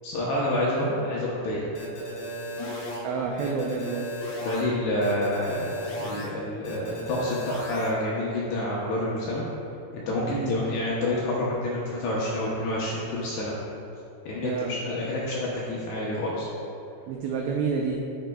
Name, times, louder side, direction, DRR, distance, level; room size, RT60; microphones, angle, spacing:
voice 1, 0.0-1.7 4.4-9.4 9.9-13.6 14.3-16.5, left 1 dB, 75° left, -5 dB, 2.5 m, -28 dB
sound 1, 1.7-3.0 3.4-4.6 5.0-6.2 6.6-7.9, equal, 60° left, 2.3 m, -35 dB
voice 2, 3.0-4.1 10.3-10.5 14.4-14.8 17.1-18.0, right 5 dB, 90° right, 0 dB, 2.5 m, -29 dB
13.0 x 6.1 x 2.3 m, 2.7 s
omnidirectional pair, 5.7 m